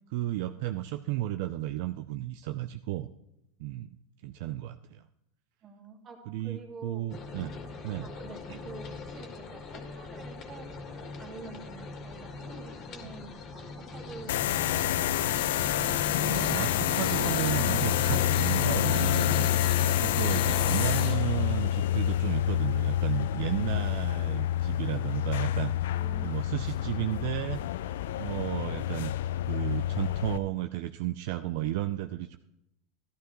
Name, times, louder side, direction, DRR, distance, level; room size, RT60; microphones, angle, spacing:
voice 1, 0.1-3.1 3.6-3.9 4.2-5.0 6.3-7.5 7.8-8.1 8.5-8.6 13.0-13.2 16.1-19.6 20.0-25.7 26.2-27.6 28.2-29.1 29.5-32.4, right 14 dB, 65° right, 9 dB, 0.4 m, -33 dB
voice 2, 5.6-7.1 8.0-15.7 25.9-26.4, right 4 dB, 30° right, 3 dB, 2.1 m, -48 dB
sound 1, 7.1-21.2, left 3 dB, 40° left, 1.9 m, -39 dB
sound 2, 14.3-30.4, left 12 dB, 80° left, 0.4 m, -28 dB
14.0 x 11.5 x 3.1 m, 0.86 s
supercardioid pair, 120°, 0 cm